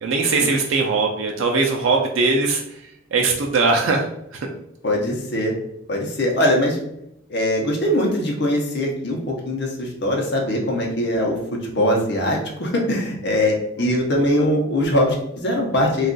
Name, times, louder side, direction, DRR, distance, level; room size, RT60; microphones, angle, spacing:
voice 1, 0.0-2.8 3.1-4.5, right 3 dB, 80° right, 1 dB, 0.4 m, -20 dB
voice 2, 4.8-5.5 5.9-6.8 7.3-11.4 11.6-16.1, left 1 dB, 55° left, 0 dB, 0.7 m, -21 dB
2.4 x 2.3 x 3.7 m, 0.78 s
head